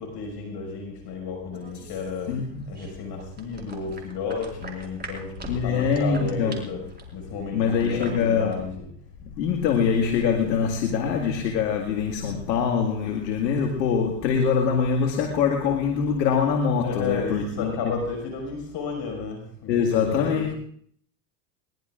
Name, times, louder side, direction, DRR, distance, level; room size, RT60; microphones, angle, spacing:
voice 1, 0.0-2.3 2.7-8.9 16.8-20.5, left 4 dB, 50° left, 2 dB, 5.8 m, -32 dB
sound 1, 1.5-8.6, right 2 dB, 20° right, 4.5 m, -43 dB
voice 2, 5.4-6.6 7.5-8.6 9.3-17.9 19.7-20.5, left 6 dB, 90° left, 3 dB, 2.1 m, -24 dB
22.5 x 20.0 x 2.5 m, 0.63 s
hypercardioid pair, 95°, 50 cm